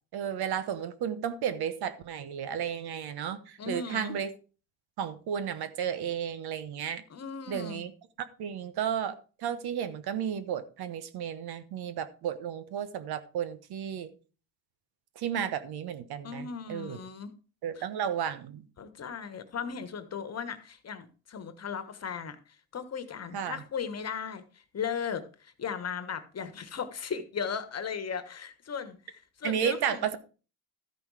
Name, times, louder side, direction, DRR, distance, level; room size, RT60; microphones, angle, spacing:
voice 1, 0.1-4.3 5.0-7.0 7.5-7.9 8.4-9.1 9.4-14.1 15.2-17.0 17.6-18.6 23.3-23.6 29.4-30.2, right 8 dB, 65° right, 1.2 m, -33 dB
voice 2, 3.6-4.1 7.1-7.8 16.2-17.3 17.8-17.9 18.8-22.4 22.7-24.4 24.7-30.0, left 6 dB, 40° left, 1.4 m, -37 dB
13.0 x 5.3 x 4.8 m
supercardioid pair, 90°, 41 cm